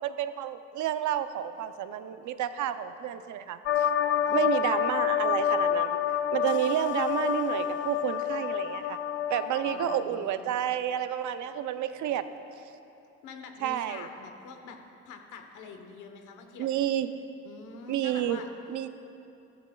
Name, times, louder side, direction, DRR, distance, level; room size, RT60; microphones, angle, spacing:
voice 1, 0.0-3.9 4.3-6.0 6.3-9.0 9.3-12.2 13.6-14.1 16.6-17.1 17.9-18.4 18.7-18.9, right 10 dB, 75° right, 11 dB, 0.6 m, -30 dB
sound 1, 3.7-10.0, left 9 dB, 40° left, 0.4 m, -28 dB
voice 2, 4.3-4.7 9.6-10.4 13.2-16.7 17.4-18.5, left 5 dB, 85° left, 5 dB, 1.1 m, -46 dB
14.0 x 13.5 x 2.3 m, 2.8 s
cardioid pair, 90°, 30 cm